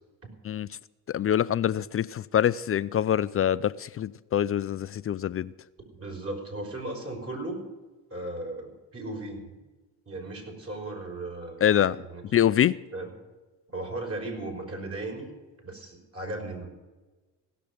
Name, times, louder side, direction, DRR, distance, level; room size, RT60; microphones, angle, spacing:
voice 1, 1.1-5.5 11.6-12.0 12.3-12.8, left 10 dB, 35° left, 0.4 m, -25 dB
voice 2, 5.9-7.6 8.1-9.5 10.1-12.2 12.9-13.1 13.7-15.3 15.6-16.7, right 2 dB, 35° right, 5.3 m, -36 dB
16.5 x 6.8 x 9.2 m
supercardioid pair, 85°, 39 cm